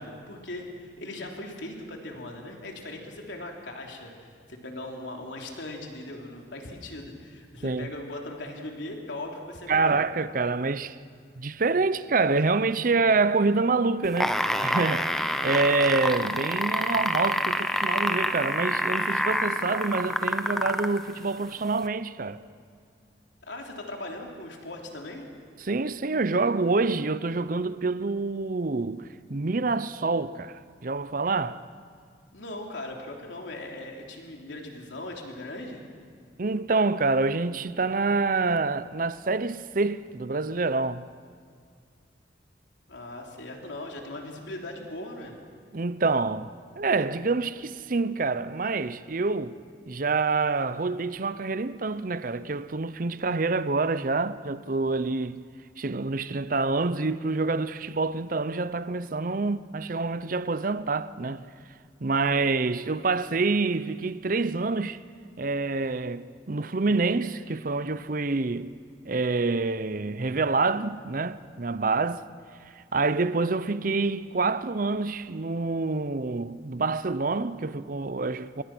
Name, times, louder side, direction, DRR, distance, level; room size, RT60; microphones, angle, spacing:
voice 1, 0.0-4.1 4.5-10.0 23.4-25.3 32.3-35.8 42.9-45.4, left 1 dB, 85° left, 3.4 m, -39 dB
voice 2, 9.7-11.0 11.4-14.4 14.6-22.4 25.6-31.6 36.4-41.1 45.7-49.6 49.9-55.4 55.8-61.4 62.0-65.0 65.4-68.7 69.1-72.2 72.9-78.6, right 3 dB, 50° right, 0.7 m, -27 dB
sound 1, 14.0-21.0 21.8-21.9, equal, ahead, 0.9 m, -27 dB
27.0 x 22.0 x 6.1 m
head